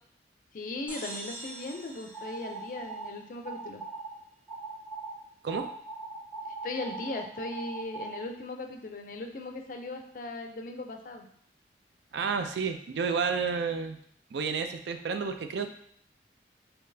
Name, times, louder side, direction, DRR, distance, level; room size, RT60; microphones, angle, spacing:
voice 1, 0.5-3.8 6.6-11.3, left 2 dB, 50° left, 5 dB, 0.4 m, -38 dB
sound 1, 0.9-3.5, right 1 dB, 30° right, 1.3 m, -44 dB
sound 2, 2.1-3.1 3.4-4.1 4.5-5.1 5.5-8.2, right 4 dB, 5° left, 0.7 m, -40 dB
voice 2, 12.1-14.0 14.3-15.7, right 5 dB, 75° right, 7 dB, 0.4 m, -30 dB
3.8 x 2.8 x 2.6 m, 0.65 s
head